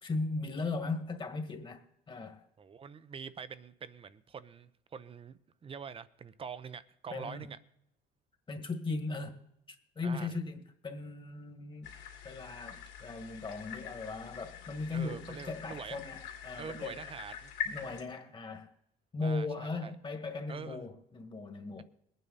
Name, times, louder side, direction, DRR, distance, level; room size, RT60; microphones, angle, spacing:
voice 1, 0.0-2.5 7.1-7.5 8.5-9.4 9.7-11.9 12.2-17.0 17.7-18.7 19.1-21.8, left 3 dB, 30° left, 1.8 m, -38 dB
voice 2, 2.6-7.6 10.0-10.3 14.9-16.0 16.6-17.5 19.2-19.9 20.5-20.9, right 6 dB, 35° right, 0.7 m, -45 dB
sound 1, 11.8-18.0, left 8 dB, 85° left, 2.9 m, -44 dB
21.0 x 9.1 x 4.1 m
cardioid pair, 110°, 17 cm